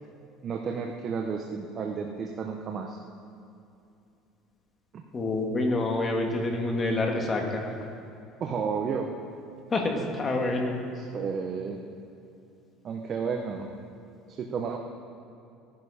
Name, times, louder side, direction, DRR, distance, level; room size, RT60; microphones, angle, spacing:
voice 1, 0.4-3.0 4.9-5.0 8.4-9.1 10.9-11.8 12.8-13.7 14.3-14.8, right 5 dB, 35° right, 2 dB, 0.9 m, -32 dB
voice 2, 5.1-7.7 9.7-10.8, left 2 dB, 25° left, 2 dB, 1.9 m, -27 dB
17.0 x 11.5 x 5.0 m, 2.7 s
cardioid pair, 145°, 0 cm